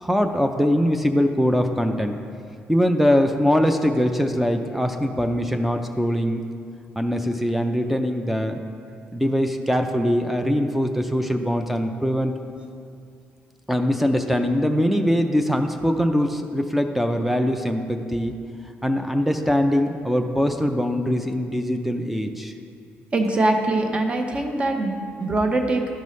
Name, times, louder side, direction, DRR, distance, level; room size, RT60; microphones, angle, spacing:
voice 1, 0.0-2.2 2.7-6.5 7.0-8.6 9.1-12.3 13.7-18.4 18.8-22.5, equal, 5° right, 5 dB, 0.4 m, -22 dB
voice 2, 23.1-25.9, right 2 dB, 25° right, 4 dB, 0.8 m, -23 dB
12.5 x 5.3 x 3.2 m, 2.4 s
cardioid pair, 135°, 4 cm